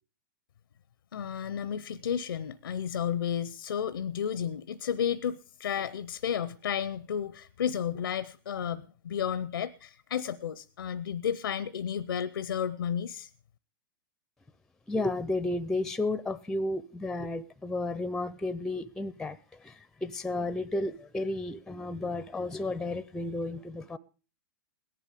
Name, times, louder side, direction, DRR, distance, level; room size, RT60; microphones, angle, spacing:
voice 1, 1.1-13.3, left 8 dB, 80° left, 17 dB, 0.6 m, -32 dB
voice 2, 14.9-24.0, left 2 dB, 5° left, 18 dB, 0.6 m, -32 dB
17.5 x 10.5 x 5.1 m, 0.37 s
hypercardioid pair, 110°, 12 cm